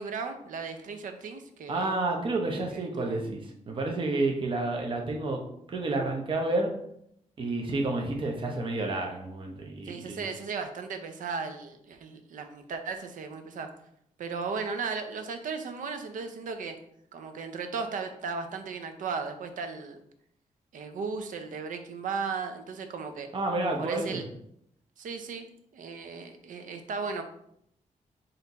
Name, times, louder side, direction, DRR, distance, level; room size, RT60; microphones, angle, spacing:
voice 1, 0.0-1.9 2.7-3.2 9.8-13.7 14.2-16.7 17.1-20.0 20.7-23.3 23.8-24.2 25.0-25.5 25.7-27.2, right 5 dB, 75° right, 7 dB, 0.6 m, -36 dB
voice 2, 1.7-5.4 5.7-6.7 7.4-10.2 23.3-24.2, right 2 dB, 40° right, 1 dB, 0.7 m, -30 dB
4.3 x 2.6 x 4.0 m, 0.72 s
wide cardioid pair, 120°, 14 cm